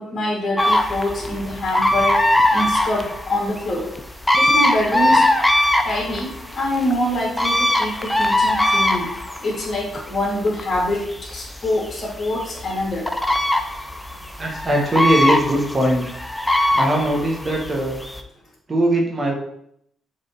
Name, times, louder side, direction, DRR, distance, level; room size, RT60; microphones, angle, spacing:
voice 1, 0.0-2.2 2.5-3.9 4.3-5.2 5.8-9.1 9.4-13.1, left 1 dB, 40° left, -2 dB, 2.6 m, -25 dB
sound 1, 0.6-18.2, left 1 dB, 5° left, 0.7 m, -21 dB
voice 2, 14.4-16.0 16.7-18.0 18.7-19.3, right 1 dB, 30° right, 0 dB, 1.4 m, -20 dB
6.7 x 3.7 x 4.5 m, 0.72 s
cardioid pair, 90°, 0 cm